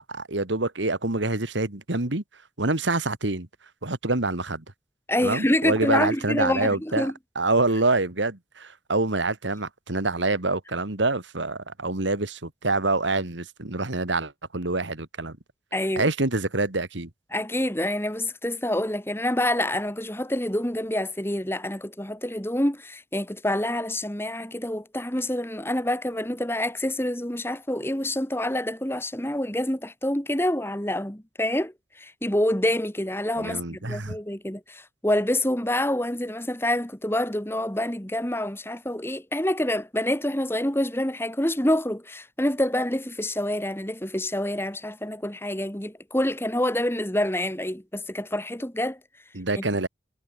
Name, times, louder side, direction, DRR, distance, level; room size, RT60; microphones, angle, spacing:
voice 1, 0.0-2.2 2.6-3.5 3.8-4.6 5.2-7.1 7.4-15.4 16.0-17.1 33.4-34.2 49.3-49.9, right 2 dB, 75° right, 2.3 m, -26 dB
voice 2, 5.1-7.1 15.7-16.1 17.3-49.0 49.6-49.7, left 1 dB, 10° left, 1.9 m, -27 dB
head